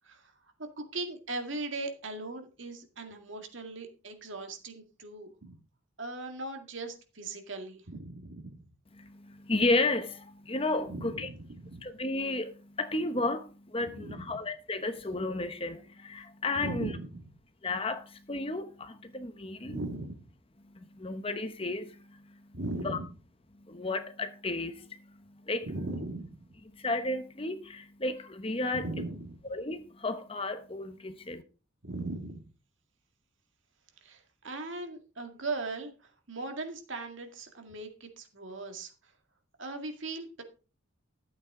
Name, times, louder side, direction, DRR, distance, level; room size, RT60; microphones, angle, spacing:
voice 1, 0.8-5.6 6.0-8.6 10.9-11.9 13.8-14.2 16.6-17.3 19.6-20.2 22.5-23.1 25.6-26.3 28.7-29.4 31.8-32.4 34.0-39.1 39.6-40.4, right 2 dB, 70° right, 2.1 m, -39 dB
voice 2, 9.0-11.3 11.8-16.9 17.6-19.8 20.6-22.5 22.8-23.0 23.5-25.7 26.7-28.9 29.5-31.4, left 2 dB, 25° left, 0.9 m, -33 dB
13.0 x 8.3 x 3.7 m
head